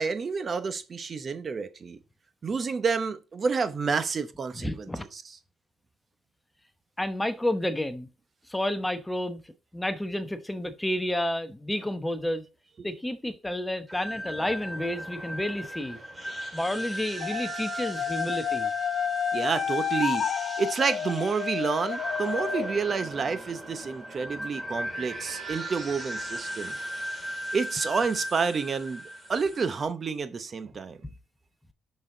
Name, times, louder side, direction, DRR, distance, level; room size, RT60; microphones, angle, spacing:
voice 1, 0.0-2.0 2.4-4.9 5.1-5.2 19.3-26.7 27.5-29.0 29.3-31.0, right 5 dB, 40° right, 0.9 m, -29 dB
voice 2, 4.5-5.1 7.0-8.1 8.5-9.4 9.7-12.5 12.8-16.0 16.5-18.7, left 1 dB, 10° left, 0.9 m, -30 dB
sound 1, 13.9-29.8, right 1 dB, 15° right, 2.4 m, -36 dB
sound 2, 17.2-22.7, left 9 dB, 65° left, 0.3 m, -31 dB
6.3 x 6.1 x 3.8 m
cardioid pair, 90°, 0 cm